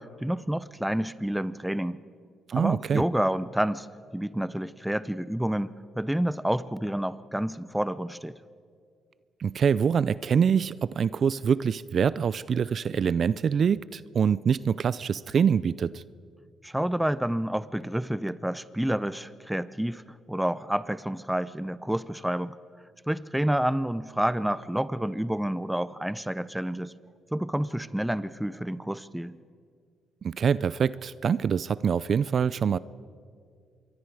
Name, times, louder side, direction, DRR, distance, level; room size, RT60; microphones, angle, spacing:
voice 1, 0.0-2.0 2.5-8.4 16.6-20.0 20.3-22.6 23.1-26.9 27.3-29.4, right 1 dB, 5° right, 16 dB, 0.7 m, -29 dB
voice 2, 2.5-3.0 9.4-16.0 30.2-32.8, right 7 dB, 50° right, 18 dB, 0.4 m, -25 dB
26.5 x 22.5 x 4.8 m, 2.2 s
cardioid pair, 90°, 0 cm